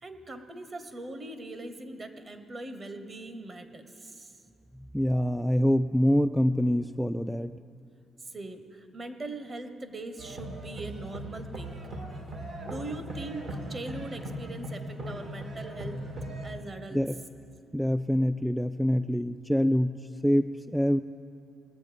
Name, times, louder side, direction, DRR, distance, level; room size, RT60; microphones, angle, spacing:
voice 1, 0.0-4.3 8.3-11.8 12.6-16.0 16.4-17.0, right 2 dB, 40° right, 9 dB, 1.2 m, -41 dB
voice 2, 4.8-7.6 16.9-17.2 17.7-21.0, equal, ahead, 9 dB, 0.3 m, -25 dB
sound 1, 10.2-16.5, right 1 dB, 70° right, 2.2 m, -39 dB
20.0 x 7.6 x 5.1 m, 2.6 s
supercardioid pair, 70°, 0 cm